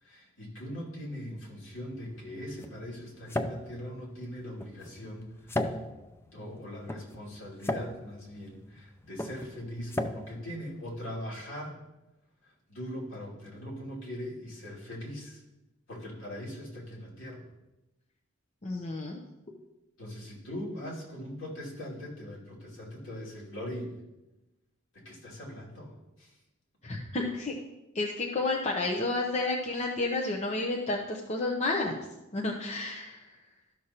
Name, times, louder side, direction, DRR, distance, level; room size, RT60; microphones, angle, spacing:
voice 1, 0.0-5.8 6.3-11.8 12.7-15.4 15.9-17.4 20.0-23.9 24.9-25.9 26.2-26.3, equal, 70° left, -5 dB, 2.7 m, -41 dB
sound 1, 1.6-11.5, left 1 dB, 10° left, 0.4 m, -37 dB
voice 2, 18.6-19.2 26.8-27.5 27.9-31.9 32.3-33.3, left 2 dB, 35° left, 0 dB, 0.7 m, -31 dB
12.5 x 6.3 x 2.9 m, 0.99 s
head